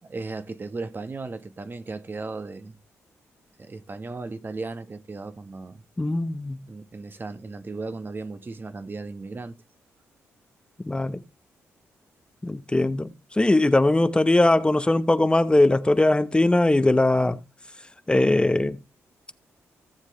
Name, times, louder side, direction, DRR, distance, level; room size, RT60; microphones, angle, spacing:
voice 1, 0.0-2.8 3.6-5.8 6.6-9.6, right 3 dB, 35° right, 1.3 m, -36 dB
voice 2, 6.0-6.6 10.8-11.2 12.4-17.4 18.1-18.8, left 2 dB, 15° left, 1.0 m, -20 dB
17.0 x 7.5 x 3.2 m
supercardioid pair, 60°, 6 cm